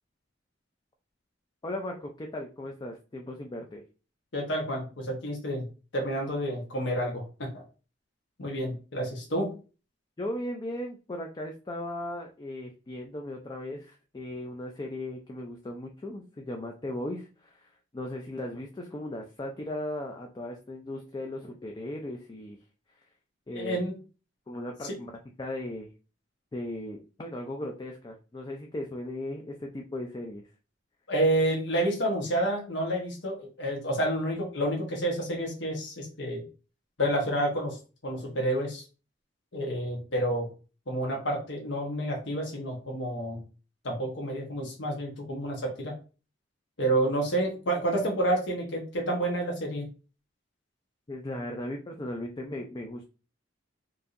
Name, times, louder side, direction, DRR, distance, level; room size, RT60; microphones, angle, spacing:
voice 1, 1.6-3.8 10.2-22.6 23.5-23.8 24.5-25.1 25.4-25.9 26.5-30.4 51.1-53.1, left 1 dB, 20° left, 2 dB, 0.4 m, -37 dB
voice 2, 4.3-5.6 5.9-7.6 8.4-9.5 23.5-24.0 24.8-24.9 31.1-36.4 37.0-38.8 39.5-40.5 40.9-43.4 43.8-45.9 46.8-49.9, right 1 dB, 65° left, -1 dB, 1.0 m, -29 dB
4.6 x 2.6 x 2.5 m, 0.34 s
head